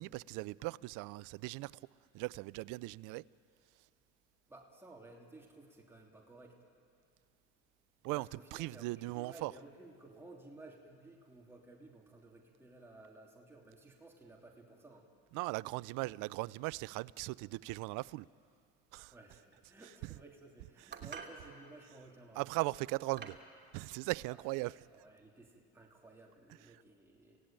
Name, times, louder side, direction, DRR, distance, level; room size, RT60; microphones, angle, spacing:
voice 1, 0.0-1.8 2.1-3.2 8.0-9.5 15.3-18.3 18.9-19.1 21.0-21.1 22.4-23.4 23.7-24.7, right 22 dB, 65° right, 0.5 m, -38 dB
voice 2, 4.5-6.6 8.1-15.1 19.1-22.4 24.3-27.4, right 2 dB, 5° right, 3.1 m, -56 dB
sound 1, 20.9-21.4 22.4-22.5 23.2-23.5, right 6 dB, 30° right, 3.0 m, -47 dB
27.0 x 17.0 x 9.1 m
supercardioid pair, 80°, 34 cm